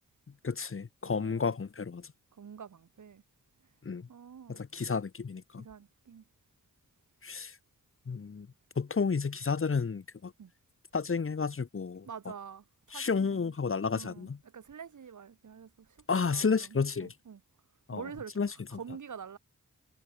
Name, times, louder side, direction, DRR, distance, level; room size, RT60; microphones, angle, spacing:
voice 1, 0.4-2.1 3.8-4.1 4.5-5.6 7.2-7.5 8.1-8.5 8.8-10.3 10.9-12.1 12.9-14.4 16.1-17.1 17.9-18.0 18.4-18.5, left 5 dB, 45° left, 1.2 m, -31 dB
voice 2, 1.0-1.5 2.3-3.2 4.1-4.6 5.6-6.2 10.4-10.5 12.1-13.5 13.9-17.4 17.9-18.3 18.8-19.4, right 7 dB, 80° right, 2.5 m, -47 dB
cardioid pair, 50°, 30 cm